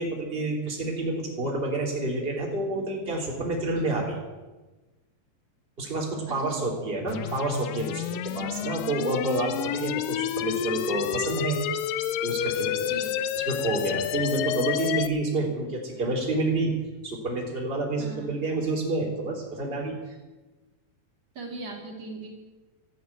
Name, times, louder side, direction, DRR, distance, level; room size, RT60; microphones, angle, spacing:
voice 1, 0.0-4.2 5.8-11.6 12.2-12.9 13.3-16.7 17.0-20.0, right 2 dB, 15° right, -1 dB, 3.1 m, -29 dB
voice 2, 6.3-6.7 8.3-8.5 12.9-13.2 18.0-18.3 21.4-22.3, right 3 dB, 45° right, 0 dB, 3.7 m, -39 dB
sound 1, 7.1-15.1, left 11 dB, 75° left, 2.2 m, -30 dB
13.5 x 11.0 x 9.6 m, 1.2 s
omnidirectional pair, 4.4 m